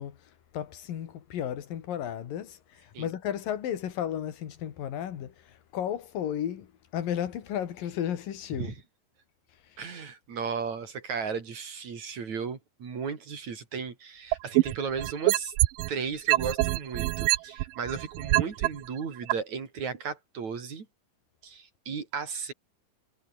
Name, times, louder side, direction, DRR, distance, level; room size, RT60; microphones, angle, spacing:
voice 1, 0.0-8.7 9.6-9.8, left 10 dB, 85° left, 3.7 m, -34 dB
voice 2, 9.8-15.5 15.9-20.9 21.4-22.5, right 6 dB, 55° right, 4.6 m, -35 dB
sound 1, 14.3-15.9 16.3-18.7 19.3-19.4, right 18 dB, 80° right, 2.4 m, -24 dB
omnidirectional pair, 3.9 m